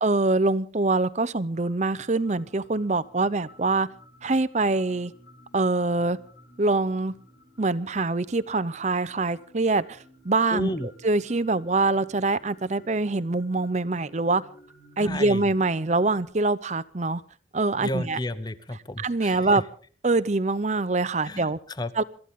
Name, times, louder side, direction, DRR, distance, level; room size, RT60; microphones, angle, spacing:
voice 1, 0.0-3.9 4.2-5.1 5.5-6.2 6.6-7.1 7.6-10.0 10.2-10.7 11.0-14.4 15.0-17.2 17.5-18.2 19.0-19.6 20.0-21.6 22.0-22.1, right 3 dB, 40° right, 16 dB, 0.7 m, -24 dB
sound 1, 1.5-16.3, equal, 65° left, 5.6 m, -54 dB
voice 2, 10.5-10.9 15.0-15.4 17.8-19.6 21.2-21.9, left 1 dB, 25° left, 14 dB, 0.9 m, -32 dB
26.5 x 14.0 x 3.7 m, 0.43 s
head